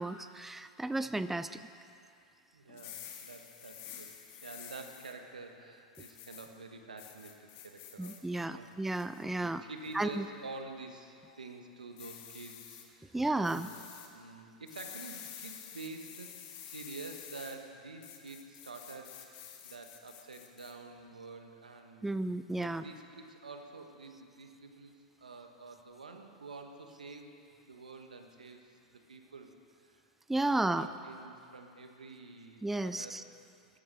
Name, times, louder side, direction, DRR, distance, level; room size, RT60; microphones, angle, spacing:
voice 1, 0.0-1.6 8.0-9.6 9.9-10.2 13.1-13.7 22.0-22.8 30.3-30.9 32.6-33.2, right 2 dB, 5° right, 12 dB, 0.4 m, -33 dB
voice 2, 2.5-8.7 9.3-13.8 14.1-22.2 22.6-24.9 25.2-27.3 27.6-29.5 29.8-30.0 30.3-33.2, right 3 dB, 90° right, 5 dB, 1.4 m, -48 dB
sound 1, 2.7-5.1 5.9-6.5 7.0-8.2 8.7-9.2 9.8-10.1 12.0-12.8 13.4-14.1 14.7-17.6 18.0-20.7, left 10 dB, 50° left, 1.8 m, -49 dB
13.5 x 12.0 x 6.3 m, 2.5 s
hypercardioid pair, 95°, 4 cm